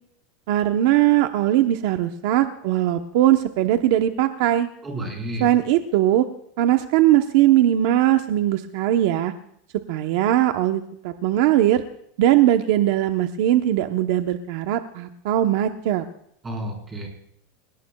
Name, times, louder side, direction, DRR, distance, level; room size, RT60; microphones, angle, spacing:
voice 1, 0.5-4.7 5.4-6.3 6.6-9.3 9.9-11.8 12.2-16.0, right 13 dB, 55° right, 7 dB, 0.9 m, -20 dB
voice 2, 4.8-5.5 16.4-17.1, right 1 dB, 15° right, 0 dB, 4.4 m, -31 dB
29.5 x 18.0 x 2.3 m, 0.72 s
supercardioid pair, 165°, 0 cm